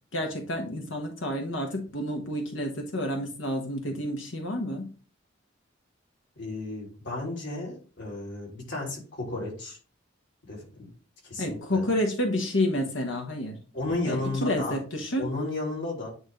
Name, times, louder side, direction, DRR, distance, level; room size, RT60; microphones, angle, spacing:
voice 1, 0.1-4.9 11.4-13.6 14.0-15.3, left 1 dB, 85° left, 3 dB, 1.2 m, -29 dB
voice 2, 6.4-9.8 10.5-10.9 11.2-11.8 13.7-14.8 15.2-16.1, left 2 dB, 65° left, -3 dB, 3.3 m, -33 dB
9.3 x 3.3 x 3.8 m, 0.37 s
head